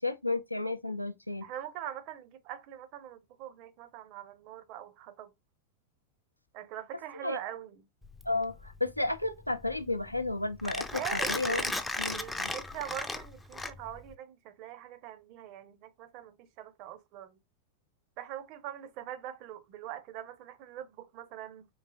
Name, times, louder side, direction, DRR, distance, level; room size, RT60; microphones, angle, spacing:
voice 1, 0.0-1.5 7.2-7.4 8.2-10.9 11.1-11.6 12.0-12.5, left 2 dB, 90° left, 0.4 m, -32 dB
voice 2, 1.4-5.3 6.5-7.9 10.9-11.7 12.1-17.4 18.2-21.7, right 11 dB, 45° right, 0.6 m, -43 dB
Mechanisms, 8.0-14.1, left 2 dB, 5° left, 0.4 m, -36 dB
4.0 x 3.0 x 2.3 m
figure-of-eight pair, 90°, 0 cm